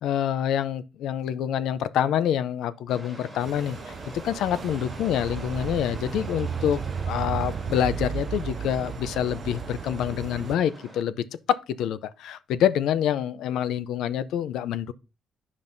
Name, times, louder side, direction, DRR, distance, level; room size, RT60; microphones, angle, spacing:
voice 1, 0.0-3.8 4.2-6.8 7.1-11.1 11.5-14.9, left 10 dB, 85° left, 0.5 m, -26 dB
sound 1, 2.9-11.0, equal, 5° left, 2.4 m, -45 dB
sound 2, 3.4-10.5, right 7 dB, 35° right, 0.4 m, -34 dB
9.7 x 5.3 x 2.6 m
cardioid pair, 175°, 0 cm